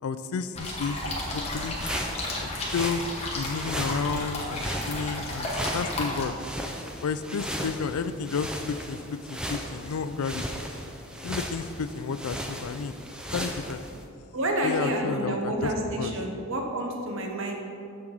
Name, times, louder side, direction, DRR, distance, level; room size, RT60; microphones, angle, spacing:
voice 1, 0.0-1.8 2.4-3.0 3.4-6.3 7.0-10.6 11.2-13.0 13.3-13.8 14.6-16.1, left 5 dB, 75° left, 12 dB, 0.4 m, -32 dB
sound 1, 0.5-6.3, left 1 dB, 30° left, 1.3 m, -33 dB
sound 2, 1.3-14.0, equal, 5° right, 0.4 m, -36 dB
voice 2, 14.3-17.6, right 1 dB, 60° right, 2 dB, 1.0 m, -29 dB
8.7 x 6.1 x 3.9 m, 2.7 s
head